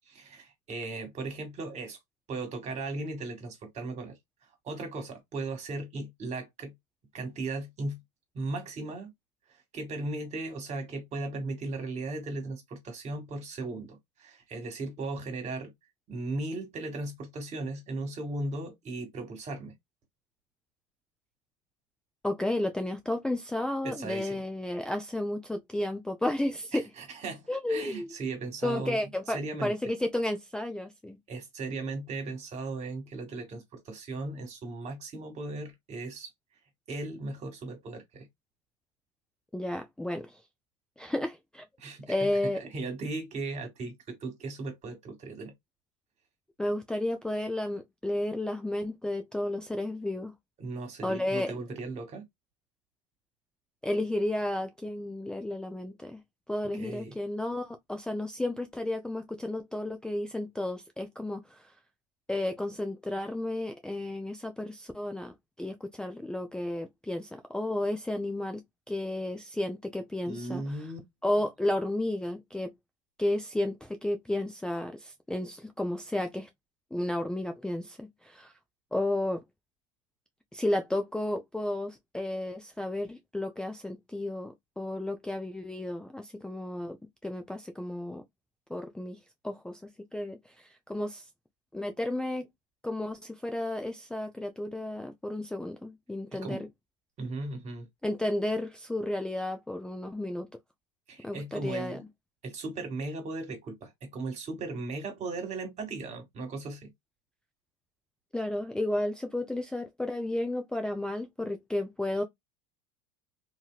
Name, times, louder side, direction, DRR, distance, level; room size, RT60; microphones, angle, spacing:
voice 1, 0.1-2.0 2.3-4.2 4.6-6.7 7.1-8.0 8.3-9.1 9.7-15.7 16.1-19.7 23.8-24.4 26.7-29.0 29.3-29.9 31.3-36.3 36.9-38.3 41.8-42.3 42.5-45.5 50.6-52.2 56.7-57.1 70.2-71.0 96.3-96.6 97.2-97.9 101.1-102.0 102.4-106.9, right 3 dB, 40° right, 1.8 m, -37 dB
voice 2, 22.2-26.9 27.5-28.1 28.6-31.2 39.5-40.4 41.0-41.6 42.1-42.6 46.6-50.3 51.0-51.5 53.8-56.2 56.5-61.7 62.3-68.6 68.9-70.6 71.2-72.7 73.2-76.5 76.9-78.5 78.9-79.4 80.5-87.0 87.2-88.2 88.7-89.2 89.4-91.2 91.7-92.5 92.8-96.7 98.0-100.5 101.2-102.0 108.3-112.2, left 1 dB, 5° left, 0.4 m, -32 dB
2.7 x 2.7 x 2.3 m
hypercardioid pair, 85°, 17 cm